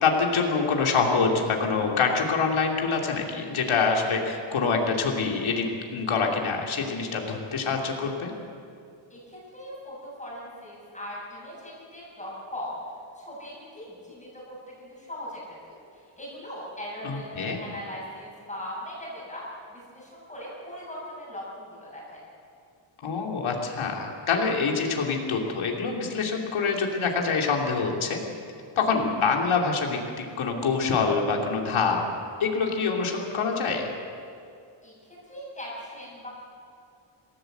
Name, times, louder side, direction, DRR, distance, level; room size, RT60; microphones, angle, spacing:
voice 1, 0.0-5.7 5.9-8.3 17.0-17.6 23.0-28.2 28.8-32.0 32.4-33.9, left 5 dB, 85° left, 0 dB, 3.0 m, -25 dB
voice 2, 9.1-12.7 13.2-22.2 34.8-36.4, left 1 dB, 15° left, -6 dB, 7.6 m, -40 dB
27.0 x 16.5 x 8.0 m, 2.4 s
wide cardioid pair, 180°, 47 cm